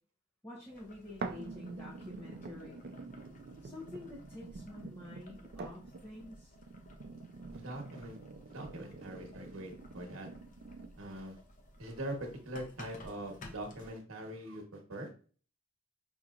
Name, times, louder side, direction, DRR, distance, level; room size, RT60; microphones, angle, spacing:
voice 1, 0.4-2.8 3.6-6.5, left 2 dB, 10° left, -6 dB, 0.9 m, -49 dB
Boiling, 0.7-13.9, left 1 dB, 40° left, 0.6 m, -56 dB
sound 1, 1.2-11.2 11.8-11.9, right 3 dB, 50° right, 0.4 m, -46 dB
voice 2, 7.5-8.2 8.4-10.3 11.0-11.4 11.8-15.1, right 1 dB, 75° right, 2 dB, 1.1 m, -42 dB
5.7 x 2.8 x 2.4 m, 0.41 s
head